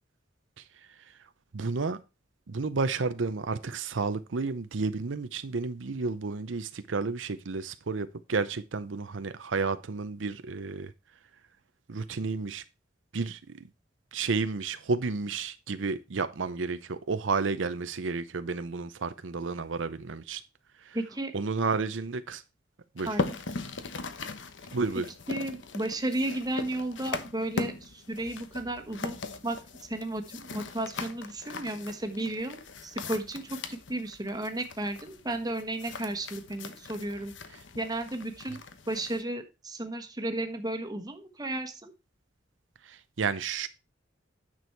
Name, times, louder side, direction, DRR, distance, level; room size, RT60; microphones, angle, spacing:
voice 1, 1.5-2.0 2.5-10.9 11.9-12.6 13.1-13.6 14.1-20.4 20.8-21.0 21.3-22.4 22.9-23.1 24.7-25.1 42.8-43.7, right 4 dB, 80° right, 0.7 m, -31 dB
voice 2, 20.9-21.3 23.1-23.4 25.3-29.2 29.4-37.3 37.7-38.6 38.9-41.9, right 1 dB, 20° right, 1.3 m, -34 dB
sound 1, 23.0-39.2, left 3 dB, 70° left, 1.0 m, -39 dB
9.7 x 6.2 x 4.5 m
head